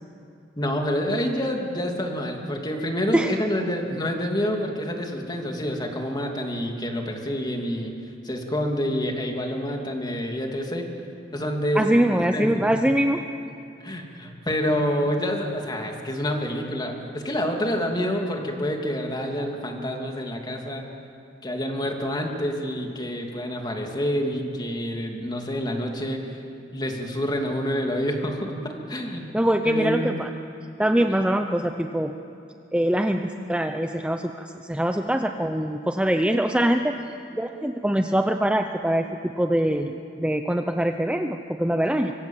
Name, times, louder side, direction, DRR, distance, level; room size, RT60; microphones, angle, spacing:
voice 1, 0.6-7.9 8.2-10.9 11.3-12.0 12.3-12.7 13.8-20.9 21.4-26.2 26.7-29.3 29.6-30.1, equal, 25° left, 2 dB, 2.8 m, -27 dB
voice 2, 11.8-13.2 29.3-30.3 30.8-32.1 32.7-37.0 37.4-42.1, right 1 dB, 5° right, 5 dB, 0.7 m, -23 dB
24.5 x 24.5 x 7.4 m, 2.6 s
head